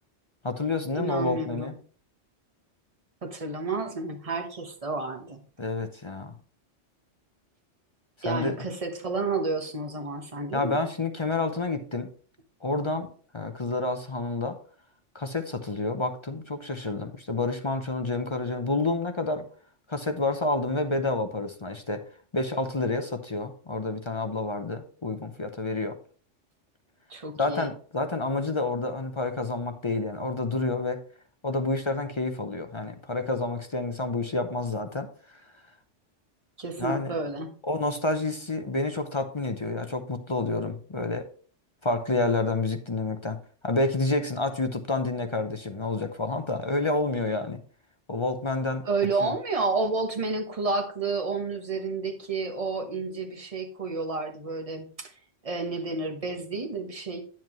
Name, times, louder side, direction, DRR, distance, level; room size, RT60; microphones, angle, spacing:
voice 1, 0.4-1.7 5.6-6.3 8.2-8.6 10.5-12.1 12.6-14.6 15.1-19.5 19.9-22.0 22.3-26.0 27.4-31.0 31.4-35.4 36.8-37.1 37.7-41.3 41.8-47.6 48.1-48.8 49.2-49.3, left 2 dB, 30° left, 7 dB, 0.6 m, -29 dB
voice 2, 1.0-1.7 3.2-5.4 8.2-10.8 27.1-27.7 36.6-37.6 48.8-55.1 55.4-57.2, right 3 dB, 30° right, 4 dB, 1.2 m, -30 dB
9.1 x 7.5 x 3.1 m, 0.42 s
omnidirectional pair, 1.2 m